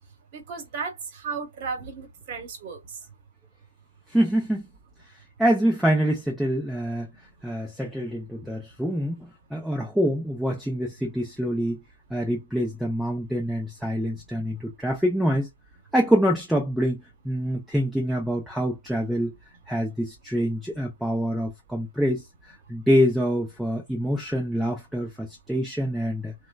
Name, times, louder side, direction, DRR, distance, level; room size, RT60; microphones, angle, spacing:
voice 1, 0.3-3.0, right 5 dB, 40° right, 1.1 m, -34 dB
voice 2, 4.1-4.7 5.4-7.1 7.4-11.8 12.1-15.5 15.9-19.3 19.7-26.3, equal, ahead, 0.5 m, -25 dB
2.9 x 2.2 x 2.2 m
hypercardioid pair, 135°, 0 cm